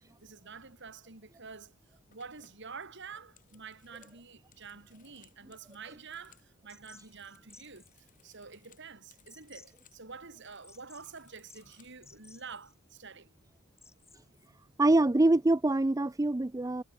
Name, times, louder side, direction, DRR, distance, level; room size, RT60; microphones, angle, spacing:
voice 1, 0.2-1.7 2.1-7.9 8.2-13.3, right 5 dB, 55° right, 3.2 m, -48 dB
sound 1, 2.1-6.5 6.8-10.0 10.3-12.2, left 9 dB, 40° left, 4.9 m, -66 dB
sound 2, 6.7-14.5, left 4 dB, 10° left, 5.5 m, -60 dB
voice 2, 14.8-16.8, right 2 dB, 15° right, 0.4 m, -24 dB
head